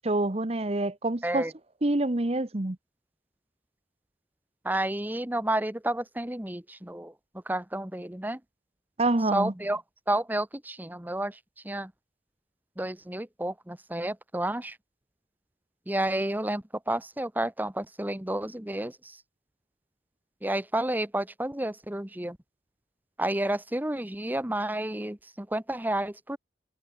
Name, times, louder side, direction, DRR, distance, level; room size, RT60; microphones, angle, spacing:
voice 1, 0.0-1.5 1.8-2.8 9.0-9.5, right 2 dB, 35° right, 1.0 m, -26 dB
voice 2, 4.6-7.1 7.5-8.4 9.3-9.8 10.1-11.4 11.6-11.9 12.8-14.8 15.9-19.2 20.4-22.4 23.2-26.4, right 1 dB, 10° right, 1.1 m, -30 dB
head